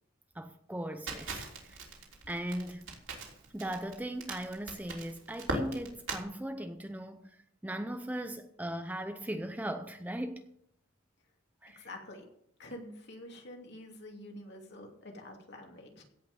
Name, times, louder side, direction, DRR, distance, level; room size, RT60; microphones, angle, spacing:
voice 1, 0.4-1.8 2.3-2.9 3.5-7.3 7.6-10.5 11.6-11.9, right 1 dB, 10° right, 0.6 m, -38 dB
Crackle, 1.1-6.2, right 2 dB, 65° right, 3.4 m, -40 dB
voice 2, 11.7-12.2 12.6-16.0, left 1 dB, 55° left, 2.8 m, -47 dB
16.5 x 5.8 x 7.5 m
head